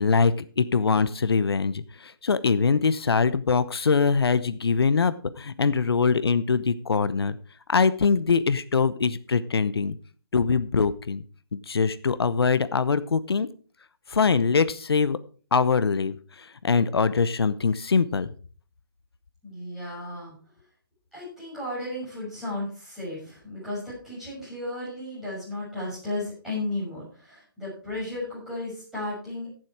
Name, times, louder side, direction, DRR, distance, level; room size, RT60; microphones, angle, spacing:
voice 1, 0.0-7.4 7.7-10.0 10.3-11.2 11.5-13.5 14.1-15.2 15.5-18.3, left 5 dB, 90° left, 14 dB, 0.9 m, -23 dB
voice 2, 19.4-20.3 21.1-29.5, left 1 dB, 5° right, -10 dB, 6.7 m, -34 dB
15.0 x 7.6 x 4.7 m, 0.40 s
hypercardioid pair, 175°, 13 cm